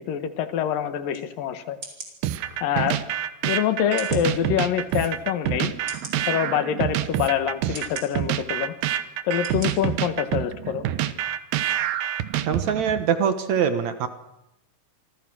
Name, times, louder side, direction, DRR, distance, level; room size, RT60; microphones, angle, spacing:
voice 1, 0.1-1.8 2.6-3.0 3.4-5.7 6.2-8.7 9.3-10.8, left 9 dB, 80° left, 10 dB, 3.2 m, -25 dB
sound 1, 1.1-1.2 1.8-2.1 2.9-3.0 4.0-4.3 5.0-5.1 5.9-6.2 7.0-7.1 7.7-8.1 8.8-8.9 9.4-9.7 10.1-10.2, right 2 dB, 30° right, 4.8 m, -39 dB
sound 2, 2.2-13.0, right 12 dB, 85° right, 2.9 m, -27 dB
voice 2, 12.5-14.1, right 7 dB, 60° right, 9 dB, 2.4 m, -23 dB
27.5 x 25.0 x 6.3 m, 0.87 s
omnidirectional pair, 4.0 m